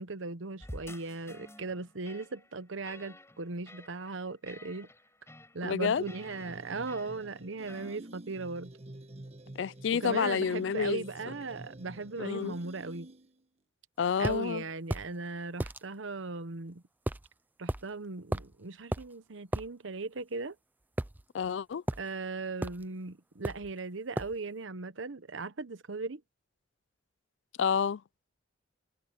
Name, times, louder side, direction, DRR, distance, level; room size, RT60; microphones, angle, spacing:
voice 1, 0.0-4.9 5.5-8.7 9.9-13.1 14.2-16.8 17.6-20.6 22.0-26.2, right 3 dB, 85° right, 1.0 m, -38 dB
sound 1, 0.6-8.0, left 1 dB, 15° left, 6.7 m, -51 dB
voice 2, 5.6-6.1 9.6-11.0 12.2-12.6 14.0-14.6 21.3-21.8 27.6-28.0, left 6 dB, 70° left, 0.4 m, -29 dB
sound 2, 5.9-13.4, right 1 dB, 35° right, 1.3 m, -49 dB
sound 3, 14.2-14.4 14.9-15.1 15.6-15.8 17.1-17.3 17.7-17.8 18.3-18.6 18.9-19.1 19.5-19.7 21.0-21.5 21.9-22.1 22.6-22.9 23.4-23.7 24.2-24.4, right 1 dB, 10° right, 0.4 m, -34 dB
head